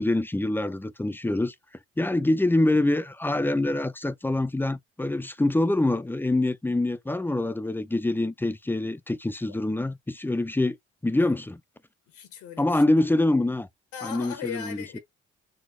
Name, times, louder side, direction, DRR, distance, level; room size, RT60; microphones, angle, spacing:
voice 1, 0.0-1.5 2.0-10.8 11.0-11.6 12.6-13.7 14.0-15.0, left 2 dB, 5° left, 0.4 m, -25 dB
voice 2, 12.1-12.8 13.9-15.0, left 9 dB, 85° left, 1.3 m, -38 dB
4.2 x 2.1 x 3.1 m
supercardioid pair, 65°, 29 cm